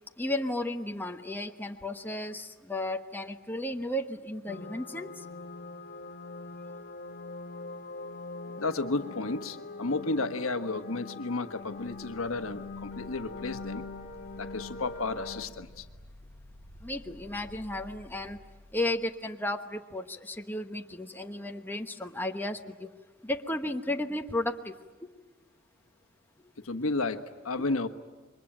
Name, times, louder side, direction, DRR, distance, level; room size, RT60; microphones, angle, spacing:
voice 1, 0.2-5.2 16.8-18.4 18.7-22.9 23.2-24.8, left 1 dB, 10° left, 5 dB, 1.0 m, -34 dB
sound 1, 4.5-15.4, left 3 dB, 45° left, 1.3 m, -42 dB
voice 2, 8.6-13.8 14.4-15.8 26.6-27.9, left 3 dB, 75° left, 8 dB, 1.3 m, -32 dB
sound 2, 11.6-19.2, left 1 dB, 40° right, 6.3 m, -52 dB
27.5 x 23.0 x 9.0 m, 1.3 s
head